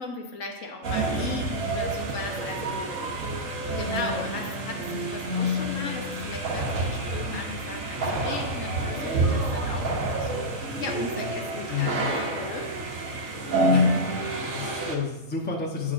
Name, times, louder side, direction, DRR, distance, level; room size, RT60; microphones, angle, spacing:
voice 1, 0.0-3.2 3.8-12.7, left 4 dB, 70° left, 2 dB, 1.2 m, -37 dB
sound 1, 0.8-15.0, right 1 dB, 75° right, 1.2 m, -28 dB
voice 2, 11.7-12.1 13.7-15.9, left 5 dB, 10° left, -1 dB, 0.7 m, -31 dB
8.8 x 5.7 x 2.5 m, 0.96 s
omnidirectional pair, 1.4 m